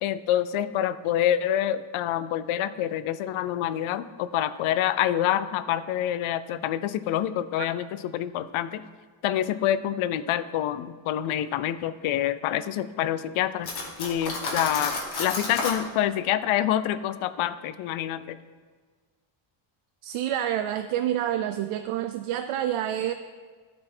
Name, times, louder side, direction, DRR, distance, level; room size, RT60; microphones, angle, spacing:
voice 1, 0.0-8.8 9.2-13.7 14.0-18.4, left 11 dB, 80° left, 14 dB, 0.6 m, -27 dB
Cutlery silverware, 13.6-15.8, left 3 dB, 55° left, 1.4 m, -31 dB
voice 2, 20.0-23.1, right 11 dB, 85° right, 8 dB, 0.5 m, -28 dB
12.0 x 4.4 x 4.4 m, 1.5 s
cardioid pair, 145°, 48 cm